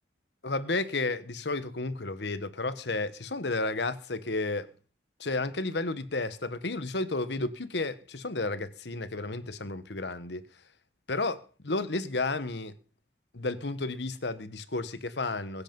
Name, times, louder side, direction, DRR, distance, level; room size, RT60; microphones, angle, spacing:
voice 1, 0.4-4.7 5.2-10.4 11.1-12.7 13.3-15.6, left 2 dB, 75° left, 1.3 m, -32 dB
22.0 x 8.4 x 5.4 m
head